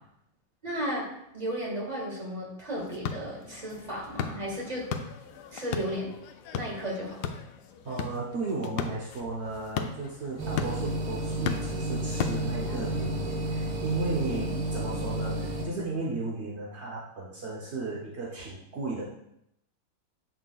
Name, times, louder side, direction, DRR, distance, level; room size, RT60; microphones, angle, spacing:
voice 1, 0.6-1.1 1.3-4.9 5.5-6.1 6.5-7.2 14.3-14.5, equal, 20° right, -3 dB, 1.6 m, -34 dB
sound 1, 2.8-12.9, left 6 dB, 90° left, 0.9 m, -37 dB
voice 2, 7.8-19.0, right 3 dB, 55° right, -4 dB, 0.7 m, -35 dB
sound 2, 10.4-15.7, right 1 dB, 70° right, 1.9 m, -31 dB
8.2 x 6.0 x 2.3 m, 0.79 s
omnidirectional pair, 2.3 m